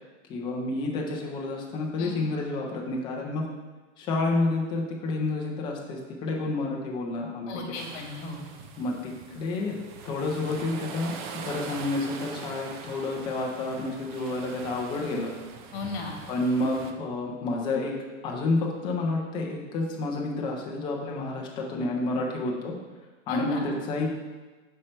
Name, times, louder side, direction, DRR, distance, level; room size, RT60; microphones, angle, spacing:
voice 1, 0.3-3.4 4.0-7.6 8.8-9.0 9.4-9.8 10.0-11.1 11.4-15.3 16.3-17.9 18.2-22.7 23.3-24.1, left 2 dB, 15° left, -1 dB, 0.4 m, -29 dB
voice 2, 7.5-8.5 15.7-16.2 23.3-23.6, left 3 dB, 50° left, 1 dB, 1.4 m, -35 dB
sound 1, 7.7-16.9, right 6 dB, 45° right, 0.5 m, -42 dB
6.4 x 4.4 x 4.2 m, 1.3 s
supercardioid pair, 170°, 36 cm